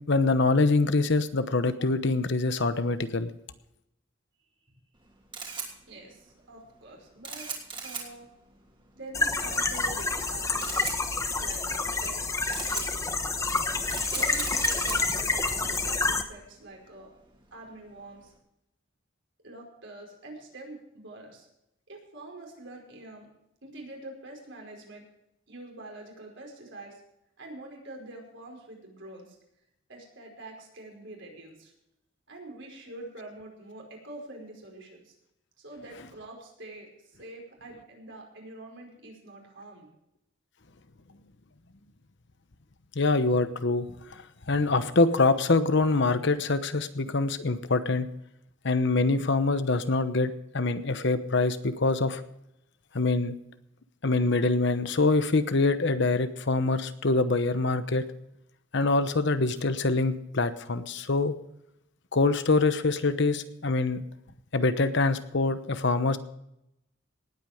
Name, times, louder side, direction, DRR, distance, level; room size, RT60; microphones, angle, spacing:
voice 1, 0.1-3.3 42.9-48.1 48.6-52.2 52.9-53.4 54.0-58.1 58.7-61.3 62.1-64.0 64.5-66.2, left 3 dB, 60° left, 11 dB, 1.0 m, -25 dB
Camera, 4.9-18.3, right 5 dB, 25° right, 3.1 m, -41 dB
voice 2, 5.9-7.5 7.8-8.3 8.9-10.7 11.4-13.2 14.1-17.1 17.5-18.3 19.4-21.5 21.9-23.3 23.6-25.1 25.5-27.0 27.4-29.4 29.9-31.7 32.3-35.1 35.6-39.9, right 2 dB, 60° right, 1 dB, 5.0 m, -45 dB
sound 1, 9.1-16.2, left 3 dB, 15° left, 1.1 m, -28 dB
18.5 x 8.8 x 5.1 m, 0.82 s
head